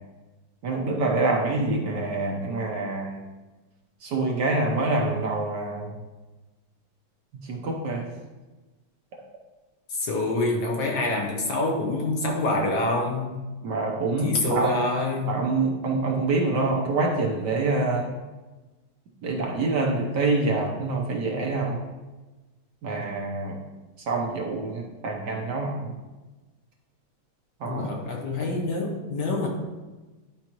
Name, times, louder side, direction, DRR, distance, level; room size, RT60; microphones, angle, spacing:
voice 1, 0.6-3.1 4.0-5.9 7.5-8.0 13.6-14.8 15.3-18.1 19.2-21.8 22.8-23.6 24.1-25.9 27.6-27.9, right 3 dB, 60° right, 0 dB, 1.3 m, -26 dB
voice 2, 9.9-13.3 14.2-15.4 27.6-29.5, left 2 dB, 60° left, 0 dB, 1.4 m, -26 dB
11.0 x 5.0 x 3.0 m, 1.2 s
omnidirectional pair, 2.4 m